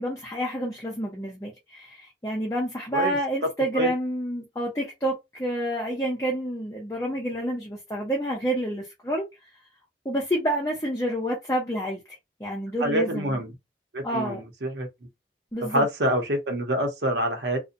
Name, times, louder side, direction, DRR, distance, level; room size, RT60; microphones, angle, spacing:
voice 1, 0.0-9.3 10.0-13.4 14.0-14.4 15.5-15.9, equal, 20° left, 0.6 m, -29 dB
voice 2, 12.8-13.5 13.9-14.9 15.6-17.6, right 1 dB, 75° right, 0.8 m, -26 dB
2.7 x 2.1 x 2.5 m
head